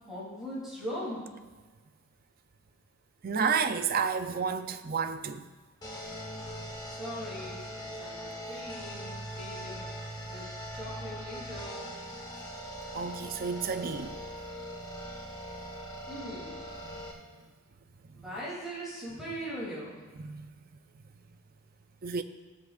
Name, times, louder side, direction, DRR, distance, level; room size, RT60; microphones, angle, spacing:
voice 1, 0.1-1.3 6.8-9.9 10.2-10.5 10.7-11.9 16.1-16.7 18.1-20.0, equal, ahead, 2.9 m, -40 dB
voice 2, 3.2-5.5 12.9-14.2 16.9-17.0 20.2-20.5 22.0-22.2, right 6 dB, 40° right, 0.5 m, -31 dB
sound 1, 5.8-17.1, equal, 20° left, 1.1 m, -41 dB
15.0 x 7.9 x 2.5 m
head